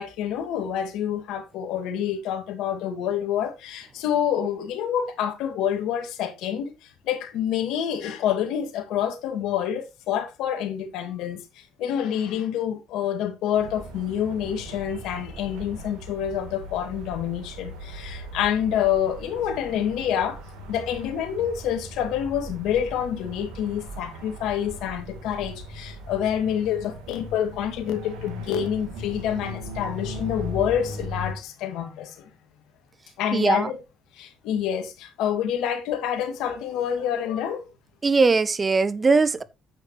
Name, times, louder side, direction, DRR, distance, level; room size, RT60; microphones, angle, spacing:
voice 1, 0.0-20.4 20.7-32.3 33.2-33.8 34.2-37.6, left 9 dB, 75° left, 2.2 m, -27 dB
sound 1, 13.5-31.3, equal, 85° right, 3.1 m, -39 dB
voice 2, 33.3-33.7 38.0-39.4, right 4 dB, 30° right, 0.8 m, -20 dB
9.2 x 8.7 x 3.0 m
supercardioid pair, 75°, 0 cm